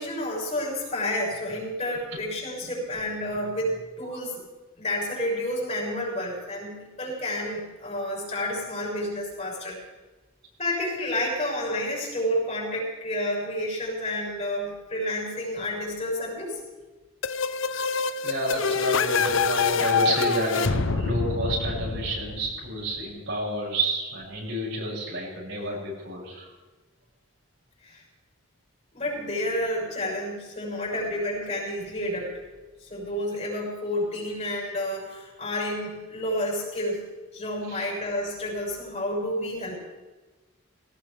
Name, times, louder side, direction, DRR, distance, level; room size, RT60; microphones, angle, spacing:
voice 1, 0.0-4.3 4.8-9.8 10.6-16.6 27.8-28.0 28.9-32.4 32.8-37.1 37.3-39.8, left 1 dB, 35° left, -3 dB, 6.7 m, -30 dB
sound 1, 17.2-22.9, left 5 dB, 65° left, 0.7 m, -26 dB
voice 2, 18.2-26.5 37.7-37.9, right 1 dB, 65° right, -5 dB, 7.0 m, -30 dB
20.5 x 18.5 x 3.5 m, 1.2 s
head